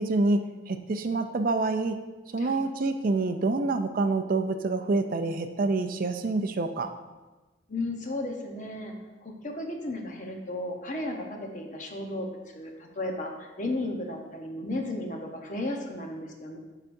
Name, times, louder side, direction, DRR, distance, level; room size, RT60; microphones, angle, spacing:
voice 1, 0.0-2.0 2.3-6.9, right 3 dB, 50° right, 8 dB, 0.4 m, -27 dB
voice 2, 7.7-8.9 9.2-12.3 12.5-16.6, left 1 dB, 45° left, 2 dB, 0.9 m, -34 dB
12.5 x 4.9 x 2.6 m, 1.2 s
head